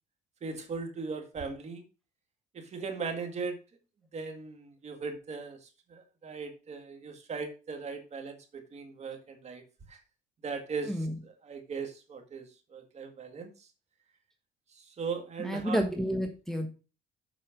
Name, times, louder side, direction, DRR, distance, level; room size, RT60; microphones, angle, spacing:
voice 1, 0.4-1.8 2.7-3.6 4.1-5.6 5.9-9.6 9.9-10.0 10.4-10.9 11.2-12.5 12.7-13.5 15.0-15.8, right 4 dB, 40° right, 5 dB, 2.0 m, -38 dB
voice 2, 15.4-16.7, equal, ahead, 3 dB, 1.3 m, -30 dB
7.6 x 5.0 x 5.1 m, 0.32 s
cardioid pair, 110°, 17 cm